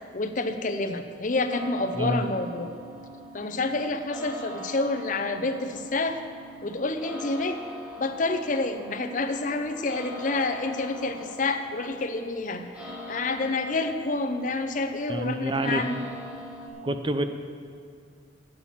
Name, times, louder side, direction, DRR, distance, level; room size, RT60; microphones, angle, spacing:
voice 1, 0.1-2.7 3.3-6.2 6.6-7.6 8.0-16.0, left 3 dB, 45° left, 7 dB, 0.6 m, -28 dB
sound 1, 1.5-16.7, equal, 5° right, 1.2 m, -42 dB
voice 2, 15.1-15.8 16.8-17.2, right 1 dB, 25° right, 8 dB, 0.5 m, -27 dB
8.9 x 8.4 x 7.3 m, 2.2 s
head